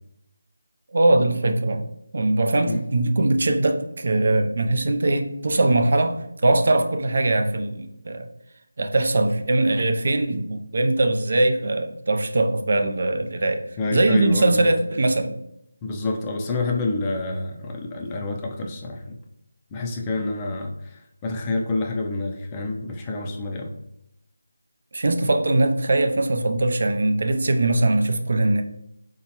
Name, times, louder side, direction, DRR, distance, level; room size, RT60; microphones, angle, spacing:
voice 1, 0.9-1.9 2.1-8.3 8.8-15.4 24.9-28.6, right 2 dB, 55° right, 5 dB, 0.4 m, -21 dB
voice 2, 13.8-14.7 15.8-19.2 19.7-23.7, left 2 dB, 20° left, 1 dB, 0.4 m, -28 dB
3.5 x 2.8 x 2.9 m, 0.81 s
figure-of-eight pair, 165°, 0 cm